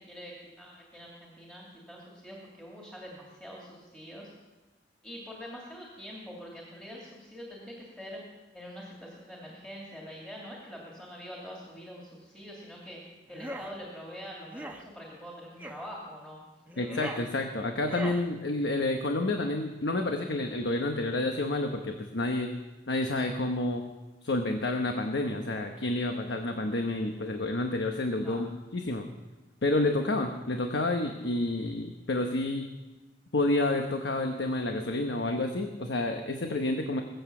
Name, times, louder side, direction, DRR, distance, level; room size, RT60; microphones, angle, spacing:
voice 1, 0.1-4.3 5.0-8.2 8.5-13.0 13.3-16.4 16.7-16.8 28.2-28.4, equal, 5° left, -4 dB, 2.6 m, -45 dB
sound 1, 13.3-13.7 14.5-14.8 15.6-15.8 16.7-17.3 17.8-18.2, right 1 dB, 10° right, 1.1 m, -39 dB
voice 2, 16.8-22.5 22.9-23.9 24.2-29.0 29.6-32.7 33.3-37.0, left 2 dB, 70° left, 4 dB, 1.1 m, -29 dB
20.5 x 8.0 x 7.1 m, 1.2 s
head